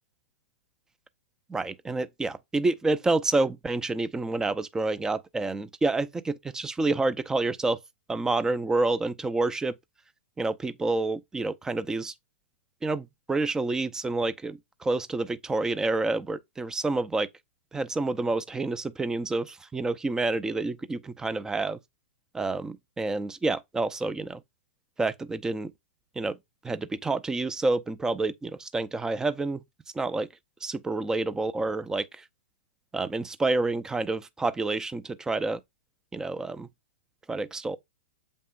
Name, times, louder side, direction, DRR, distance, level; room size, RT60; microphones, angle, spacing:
voice 1, 1.5-7.8 8.1-9.7 10.4-12.1 12.8-17.3 17.7-21.8 22.3-24.4 25.0-25.7 26.2-26.4 26.6-29.6 29.9-30.3 30.6-32.2 32.9-35.6 36.1-36.7 37.3-37.8, right 3 dB, 10° right, 0.6 m, -28 dB
7.7 x 5.4 x 2.5 m
hypercardioid pair, 120°, 7 cm